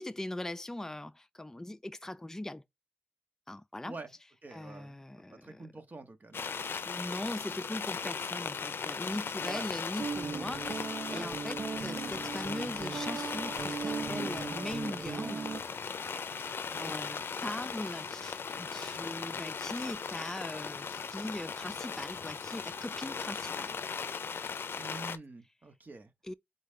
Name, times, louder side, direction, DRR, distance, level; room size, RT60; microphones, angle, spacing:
voice 1, 0.0-2.6 3.5-3.9 4.5-5.7 6.9-15.5 16.3-23.8 26.2-26.3, left 1 dB, 15° left, 0.4 m, -40 dB
voice 2, 4.4-6.6 9.4-9.7 11.0-11.4 16.7-17.0 24.8-26.1, right 3 dB, 50° right, 1.0 m, -46 dB
sound 1, 6.3-25.2, left 5 dB, 85° left, 0.4 m, -38 dB
Guitar, 10.0-15.6, right 5 dB, 80° right, 0.4 m, -38 dB
4.0 x 3.2 x 3.6 m
wide cardioid pair, 70°, 4 cm